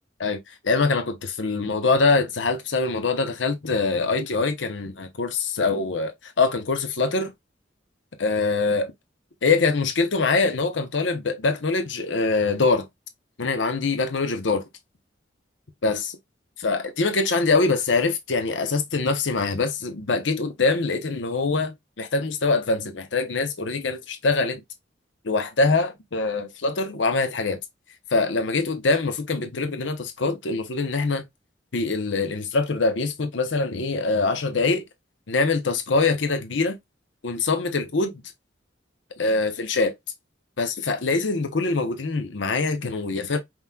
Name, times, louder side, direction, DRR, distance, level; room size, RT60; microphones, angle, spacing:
voice 1, 0.2-7.3 8.2-8.9 9.4-12.9 13.4-14.6 15.8-16.2 16.6-24.6 25.2-27.6 28.1-31.2 31.7-34.8 35.3-36.8 37.2-38.2 39.2-39.9 40.6-43.4, left 3 dB, 90° left, 0.8 m, -24 dB
5.4 x 3.1 x 2.3 m
head